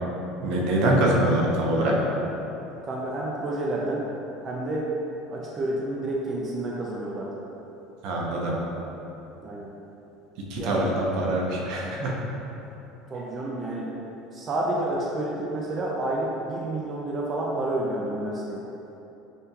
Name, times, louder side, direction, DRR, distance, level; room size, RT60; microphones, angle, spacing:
voice 1, 0.4-2.0 8.0-8.6 10.5-12.1, right 1 dB, 65° right, -3 dB, 0.8 m, -24 dB
voice 2, 2.9-4.0 4.4-4.9 5.3-7.3 9.4-9.7 10.6-11.0 13.1-13.9 14.3-18.6, right 1 dB, 30° right, -4 dB, 0.5 m, -29 dB
5.6 x 2.7 x 2.8 m, 2.9 s
supercardioid pair, 125°, 0 cm